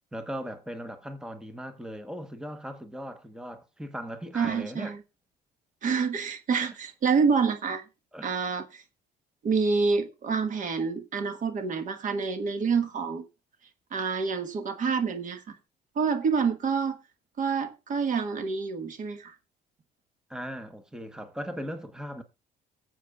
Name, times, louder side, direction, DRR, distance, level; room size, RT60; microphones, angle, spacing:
voice 1, 0.1-5.0 8.1-8.4 20.3-22.2, equal, 5° right, 1.0 m, -38 dB
voice 2, 4.3-5.0 5.8-7.8 8.2-8.8 9.4-13.2 13.9-15.6 15.9-17.0 17.4-19.3, right 5 dB, 50° right, 1.3 m, -27 dB
22.5 x 7.6 x 2.3 m
cardioid pair, 110°, 17 cm